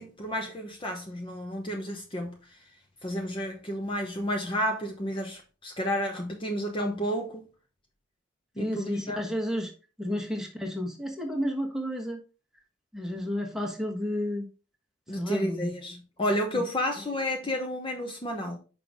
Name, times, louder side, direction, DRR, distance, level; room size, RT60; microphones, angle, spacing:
voice 1, 0.0-2.4 3.0-7.5 8.6-9.2 15.1-18.6, equal, 25° left, 0.8 m, -31 dB
voice 2, 8.6-9.7 10.0-12.2 12.9-14.5 15.1-15.6 16.5-16.6, equal, ahead, 1.2 m, -31 dB
5.7 x 5.3 x 3.5 m
head